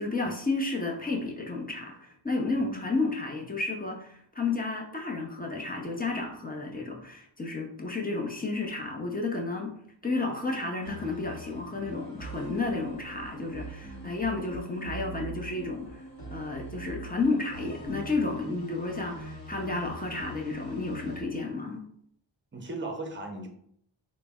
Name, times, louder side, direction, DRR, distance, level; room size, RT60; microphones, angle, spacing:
voice 1, 0.0-9.7 10.0-16.0 16.3-21.8, left 3 dB, 20° left, 1 dB, 0.6 m, -32 dB
voice 2, 2.6-2.9 13.8-14.2 22.5-23.5, right 2 dB, 25° right, 3 dB, 0.6 m, -39 dB
sound 1, 10.8-21.2, right 2 dB, 50° left, 1.0 m, -43 dB
3.8 x 2.0 x 3.5 m, 0.68 s
wide cardioid pair, 100°, 46 cm